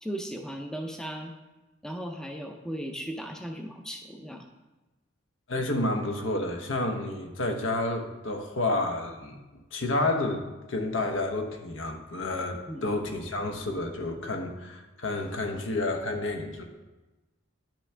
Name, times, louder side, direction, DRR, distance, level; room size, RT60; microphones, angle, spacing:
voice 1, 0.0-1.3 1.8-4.5 12.5-12.8, equal, 5° left, 3 dB, 0.5 m, -37 dB
voice 2, 5.5-9.4 9.7-16.6, left 2 dB, 75° left, 4 dB, 1.0 m, -30 dB
9.9 x 6.1 x 3.4 m, 1.1 s
head